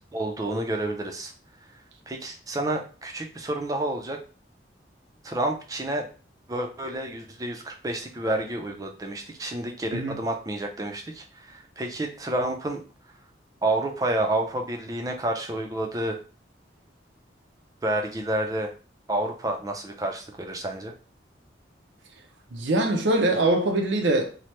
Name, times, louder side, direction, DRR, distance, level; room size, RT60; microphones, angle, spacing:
voice 1, 0.1-1.3 2.1-4.2 5.2-6.1 6.5-12.8 13.6-16.2 17.8-18.7 19.1-20.9, right 1 dB, 20° right, 0.4 m, -29 dB
voice 2, 22.5-24.4, right 2 dB, 90° right, 0.5 m, -23 dB
2.9 x 2.0 x 3.1 m
head